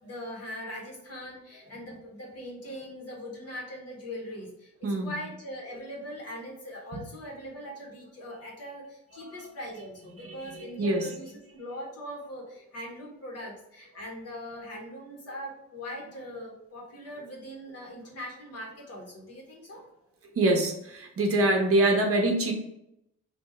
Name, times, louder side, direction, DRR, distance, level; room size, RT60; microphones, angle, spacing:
voice 1, 0.0-19.9, equal, 55° left, -2 dB, 1.4 m, -41 dB
voice 2, 10.2-11.1 20.4-22.5, right 2 dB, 50° right, 3 dB, 0.9 m, -25 dB
3.4 x 2.8 x 4.3 m, 0.81 s
wide cardioid pair, 160°, 29 cm